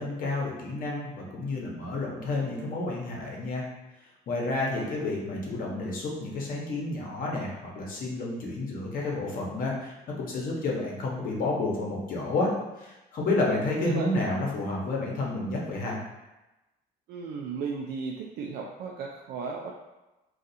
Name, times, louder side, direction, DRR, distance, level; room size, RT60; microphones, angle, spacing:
voice 1, 0.0-3.7 4.3-12.5 12.8-16.0, left 2 dB, 55° left, -2 dB, 0.9 m, -30 dB
voice 2, 17.1-19.7, right 5 dB, 70° right, -1 dB, 0.4 m, -35 dB
2.5 x 2.4 x 4.1 m, 1.0 s
cardioid pair, 110°, 17 cm